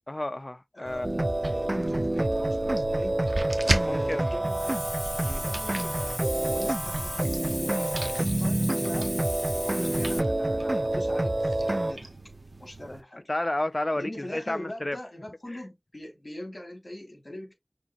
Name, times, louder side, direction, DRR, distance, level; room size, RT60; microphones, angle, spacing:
voice 1, 0.1-1.1 3.6-4.4 5.2-5.4 13.3-15.0 15.5-15.6, left 1 dB, 50° left, 0.4 m, -31 dB
voice 2, 0.7-3.2 3.8-4.9 5.3-6.2 6.5-9.2 9.5-12.1 12.6-13.3 13.9-17.5, left 1 dB, 70° left, 2.9 m, -42 dB
sound 1, 0.9-13.0, right 2 dB, 80° right, 0.8 m, -37 dB
sound 2, 1.0-11.9, right 1 dB, 50° right, 0.4 m, -28 dB
Hiss, 4.4-10.2, equal, 20° left, 1.6 m, -37 dB
6.1 x 2.6 x 2.9 m
wide cardioid pair, 40°, 0 cm